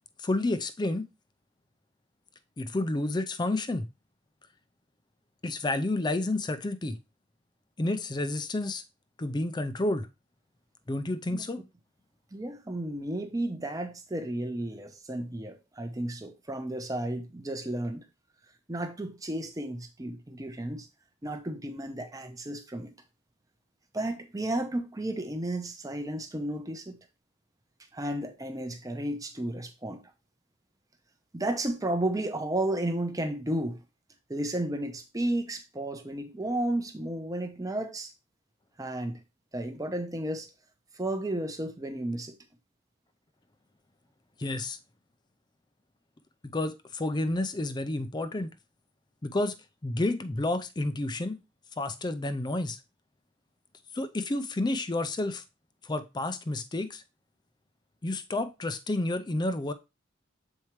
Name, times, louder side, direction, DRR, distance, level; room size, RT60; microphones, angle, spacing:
voice 1, 0.2-1.1 2.6-3.9 5.4-7.0 7.8-8.8 9.2-10.1 10.9-11.6 44.4-44.8 46.4-48.5 49.2-49.6 49.8-51.4 51.8-52.8 53.9-55.4 55.8-57.0 58.0-59.7, left 2 dB, 20° left, 0.4 m, -30 dB
voice 2, 12.3-18.0 18.7-20.9 21.2-22.9 23.9-27.0 27.9-30.0 31.3-33.8 34.3-38.1 38.8-39.2 39.5-40.5 41.0-42.4, right 1 dB, 20° right, 0.7 m, -33 dB
7.2 x 4.5 x 3.0 m
head